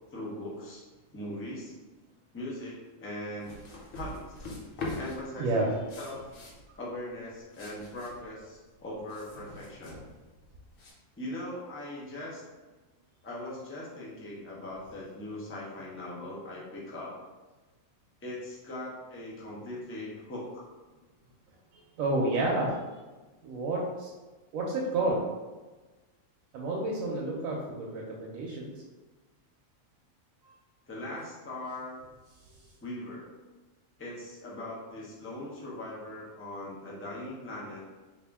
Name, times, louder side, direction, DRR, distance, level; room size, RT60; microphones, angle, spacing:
voice 1, 0.1-0.8 1.1-1.7 2.3-3.5 3.9-4.5 4.9-6.2 6.8-10.0 11.2-12.4 13.2-17.2 18.2-20.6 30.9-32.0 32.8-33.3 34.0-37.8, left 1 dB, 15° left, -5 dB, 0.5 m, -40 dB
sound 1, 3.4-10.9, left 2 dB, 70° left, 1.1 m, -43 dB
voice 2, 5.4-5.7 21.7-22.8 23.4-24.1 24.5-25.2 26.5-28.7 30.4-30.5, right 2 dB, 85° right, -3 dB, 1.0 m, -30 dB
3.5 x 2.5 x 3.4 m, 1.2 s
omnidirectional pair, 1.4 m